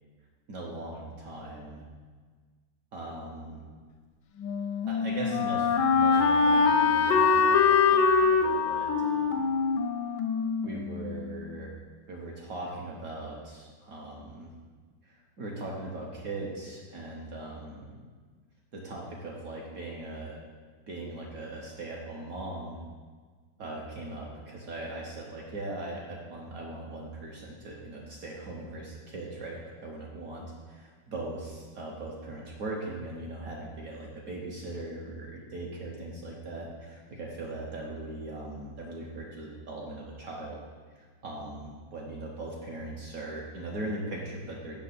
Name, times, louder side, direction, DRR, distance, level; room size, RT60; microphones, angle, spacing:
voice 1, 0.5-1.8 2.9-3.6 4.9-9.5 10.6-11.7 12.1-14.5 15.0-18.0 18.7-20.4 20.9-22.8 23.6-40.6 40.9-44.8, right 2 dB, 60° right, -3 dB, 1.0 m, -39 dB
Wind instrument woodwind instrument, 4.4-11.3, left 5 dB, 75° left, 1.0 m, -24 dB
6.5 x 5.3 x 4.1 m, 1.5 s
omnidirectional pair, 2.2 m